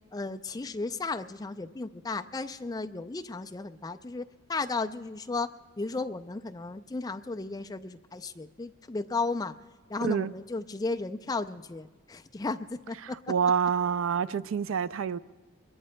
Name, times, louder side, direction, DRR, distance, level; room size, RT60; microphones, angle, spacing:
voice 1, 0.1-5.5 5.8-9.6 9.9-13.2, left 3 dB, 15° left, 0.3 m, -34 dB
voice 2, 10.0-10.3 13.0-15.2, right 7 dB, 65° right, 0.4 m, -27 dB
23.5 x 22.0 x 2.2 m
head